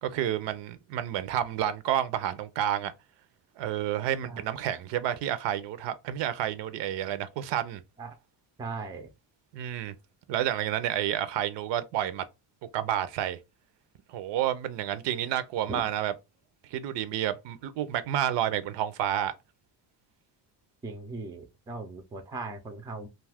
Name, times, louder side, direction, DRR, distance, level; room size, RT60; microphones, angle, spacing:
voice 1, 0.0-2.9 3.6-7.8 9.5-9.9 10.3-12.2 12.7-13.4 14.1-16.1 16.7-19.3, right 11 dB, 70° right, 0.5 m, -30 dB
voice 2, 8.6-9.1 15.7-15.8 20.8-23.1, right 3 dB, 10° right, 0.3 m, -38 dB
2.6 x 2.4 x 3.3 m
cardioid pair, 145°, 45 cm